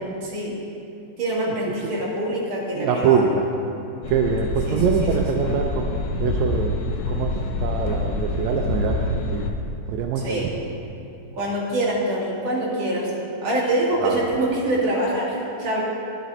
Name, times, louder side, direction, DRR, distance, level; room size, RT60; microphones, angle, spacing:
voice 1, 0.2-0.6 1.2-3.2 4.7-5.1 10.2-10.5 11.4-13.1 13.4-15.8, right 1 dB, 55° right, -6 dB, 3.3 m, -25 dB
voice 2, 2.8-3.5 4.1-6.8 7.1-7.3 7.6-9.5 9.9-10.6 14.0-14.2, right 7 dB, 75° right, 2 dB, 1.7 m, -23 dB
sound 1, 4.0-9.5, left 3 dB, 70° left, 2.0 m, -26 dB
12.0 x 10.5 x 4.2 m, 2.7 s
omnidirectional pair, 3.7 m